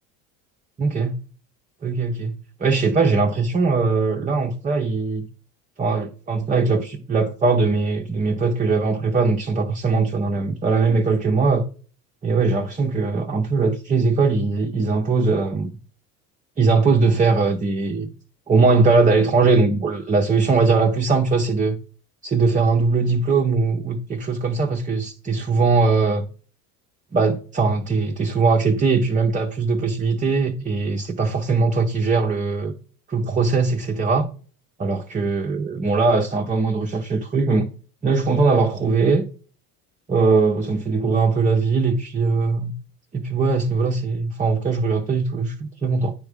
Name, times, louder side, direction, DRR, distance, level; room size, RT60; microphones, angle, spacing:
voice 1, 0.8-1.1 1.8-2.3 2.6-5.3 5.8-11.6 12.2-15.7 16.6-18.1 18.5-21.8 22.2-26.3 27.1-32.7 33.1-34.3 34.8-37.7 38.0-39.2 40.1-42.7 43.1-46.1, right 4 dB, 15° right, 0.6 m, -20 dB
10.0 x 3.5 x 3.4 m
hypercardioid pair, 75°, 45 cm